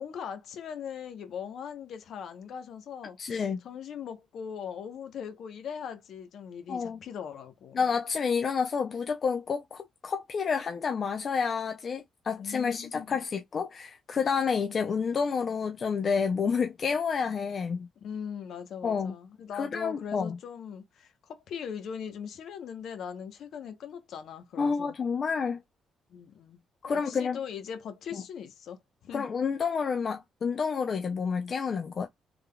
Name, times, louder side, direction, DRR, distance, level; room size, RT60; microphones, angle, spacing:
voice 1, 0.0-7.8 12.4-13.2 18.0-24.9 26.1-29.2, left 7 dB, 70° left, 0.8 m, -40 dB
voice 2, 3.2-3.6 6.7-7.0 7.7-17.9 18.8-19.1 19.5-20.4 24.6-25.6 26.8-27.4 28.1-28.2 29.1-32.1, left 6 dB, 45° left, 0.4 m, -29 dB
3.5 x 3.4 x 2.2 m
cardioid pair, 90°, 0 cm